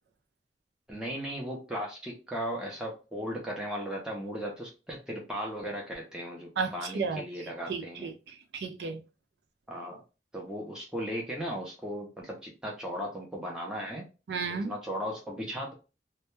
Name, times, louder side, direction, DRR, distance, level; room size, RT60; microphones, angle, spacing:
voice 1, 0.9-8.1 9.7-10.0 10.3-14.0 14.6-15.7, equal, 5° right, 0.5 m, -36 dB
voice 2, 6.6-7.2 7.7-9.0 14.3-14.7, right 5 dB, 70° right, 0.4 m, -33 dB
2.2 x 2.2 x 2.9 m
head